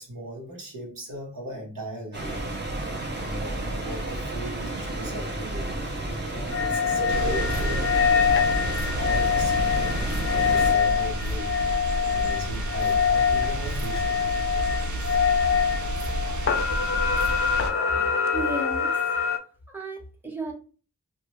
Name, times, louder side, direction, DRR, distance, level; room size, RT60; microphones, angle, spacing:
voice 1, 0.0-2.4 3.1-7.9 8.3-11.6 12.1-14.2, equal, 75° right, 1.1 m, -38 dB
sound 1, 2.1-10.7, right 2 dB, 30° right, 0.8 m, -31 dB
sound 2, 6.5-19.4, left 7 dB, 45° left, 0.4 m, -25 dB
sound 3, 7.1-17.7, right 1 dB, 60° right, 0.5 m, -30 dB
voice 2, 17.9-19.0 19.7-20.5, right 1 dB, 5° right, 1.0 m, -34 dB
2.6 x 2.3 x 3.0 m
wide cardioid pair, 50°, 33 cm